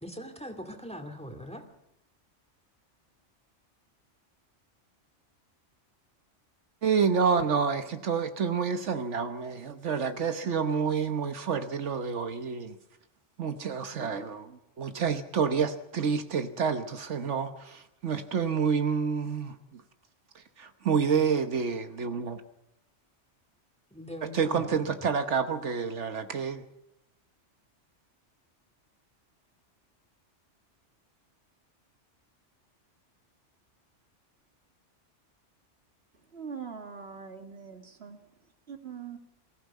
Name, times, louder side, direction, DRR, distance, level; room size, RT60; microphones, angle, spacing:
voice 1, 0.0-1.6 23.9-24.8, equal, 5° left, 2.2 m, -41 dB
voice 2, 6.8-12.7 13.4-19.8 20.3-22.4 24.3-26.6, right 6 dB, 75° right, 1.3 m, -28 dB
voice 3, 36.3-39.2, right 6 dB, 60° right, 2.1 m, -43 dB
23.0 x 15.5 x 8.2 m
omnidirectional pair, 1.2 m